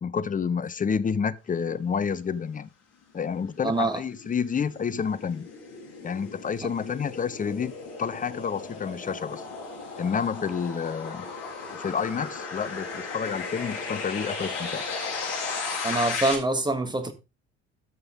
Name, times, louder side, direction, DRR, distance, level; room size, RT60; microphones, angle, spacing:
voice 1, 0.0-2.7 3.1-5.5 6.0-7.7 8.0-9.4 10.0-11.3 11.8-14.8, left 6 dB, 25° left, 0.9 m, -29 dB
sound 1, 3.1-16.3, left 4 dB, 65° left, 3.6 m, -36 dB
voice 2, 3.6-4.0 15.8-17.1, right 2 dB, 15° right, 1.9 m, -25 dB
13.0 x 5.6 x 3.8 m
figure-of-eight pair, 55°, 34 cm